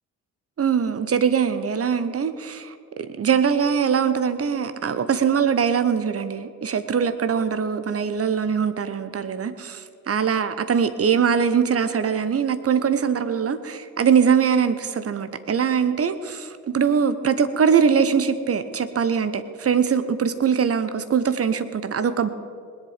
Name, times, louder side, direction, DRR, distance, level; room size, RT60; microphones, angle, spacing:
voice 1, 0.6-22.3, right 7 dB, 30° right, 11 dB, 1.1 m, -22 dB
20.0 x 10.5 x 5.1 m, 2.3 s
figure-of-eight pair, 45°, 45 cm